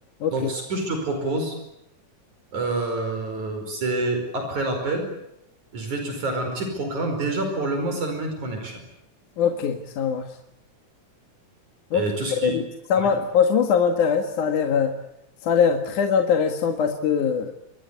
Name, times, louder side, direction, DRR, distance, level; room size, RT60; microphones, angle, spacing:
voice 1, 0.3-1.5 2.5-5.0 5.7-8.8 11.9-12.5 13.0-13.1, right 2 dB, 65° right, 5 dB, 6.4 m, -27 dB
voice 2, 9.4-10.3 11.9-12.1 12.4-12.6 12.9-14.9 15.4-17.5, left 7 dB, 70° left, 5 dB, 3.2 m, -22 dB
28.0 x 23.0 x 8.4 m, 0.81 s
omnidirectional pair, 3.7 m